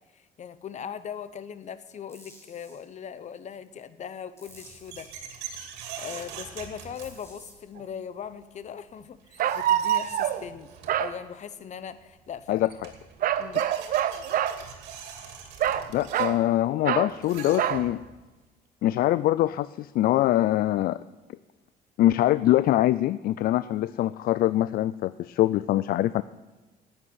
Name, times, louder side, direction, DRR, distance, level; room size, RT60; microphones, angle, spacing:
voice 1, 0.1-5.5 6.0-10.7 11.0-12.7 13.4-13.7, left 8 dB, 45° left, 15 dB, 0.9 m, -40 dB
sound 1, 2.1-2.8 4.4-5.1 7.0-7.5 9.8-10.4, equal, 15° left, 4.6 m, -51 dB
sound 2, 4.4-7.6 8.9-9.0 9.3-11.1 12.3-12.4 12.6-18.1, right 7 dB, 85° right, 2.5 m, -43 dB
sound 3, 7.8-7.9 9.4-10.4 10.9-11.1 13.2-14.6 15.6-16.4 16.8-17.1 17.6-17.9, right 11 dB, 55° right, 0.7 m, -25 dB
voice 2, 12.5-12.9 15.9-18.0 18.8-21.0 22.0-26.2, left 14 dB, 60° left, 17 dB, 0.4 m, -23 dB
11.0 x 8.9 x 9.7 m, 1.2 s
cardioid pair, 110°, 17 cm